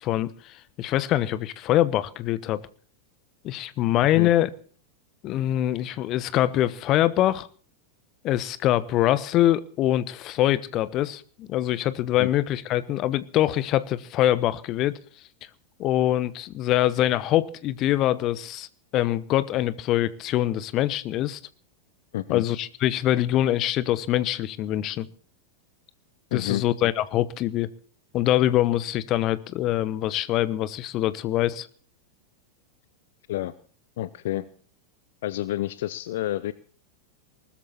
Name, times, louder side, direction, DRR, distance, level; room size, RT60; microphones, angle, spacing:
voice 1, 0.0-2.6 3.4-4.5 5.2-7.5 8.2-15.0 15.8-18.7 18.9-21.4 22.3-25.1 26.3-27.7 28.1-31.7, left 13 dB, 35° left, 1.0 m, -24 dB
voice 2, 26.3-26.6 33.3-33.5 34.0-34.5 35.2-36.5, left 14 dB, 55° left, 0.7 m, -29 dB
20.0 x 13.5 x 4.3 m
figure-of-eight pair, 90°, 0 cm